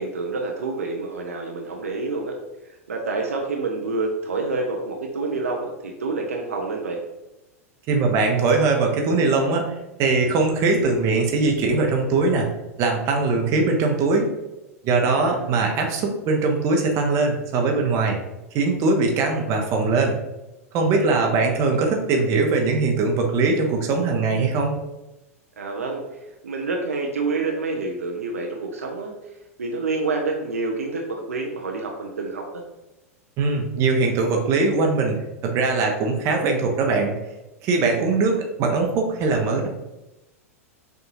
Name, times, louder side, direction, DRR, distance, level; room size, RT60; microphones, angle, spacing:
voice 1, 0.0-2.3 2.7-7.0 15.1-15.5 20.9-21.3 25.6-26.0 26.4-29.1 29.6-32.6, right 3 dB, 70° right, 1 dB, 0.6 m, -28 dB
voice 2, 7.9-9.6 10.0-12.5 12.8-14.3 14.8-18.2 18.5-20.2 20.7-24.7 33.4-35.2 35.4-37.2 37.6-39.7, right 3 dB, 35° right, 2 dB, 0.8 m, -21 dB
6.1 x 2.6 x 2.9 m, 0.97 s
figure-of-eight pair, 90°, 8 cm